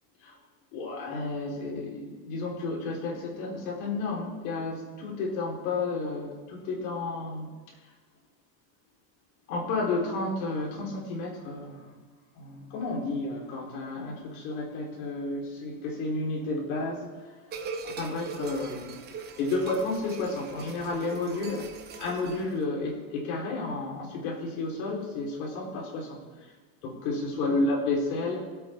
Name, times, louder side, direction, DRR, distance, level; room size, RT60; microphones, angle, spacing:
voice 1, 0.7-7.5 9.5-11.9 12.4-17.1 17.8-19.0 19.4-21.7 22.0-26.2 26.8-28.4, left 3 dB, 60° left, -2 dB, 4.2 m, -31 dB
sound 1, 17.5-22.6, right 5 dB, 20° right, 0.9 m, -40 dB
23.0 x 8.7 x 3.7 m, 1.4 s
supercardioid pair, 175°, 48 cm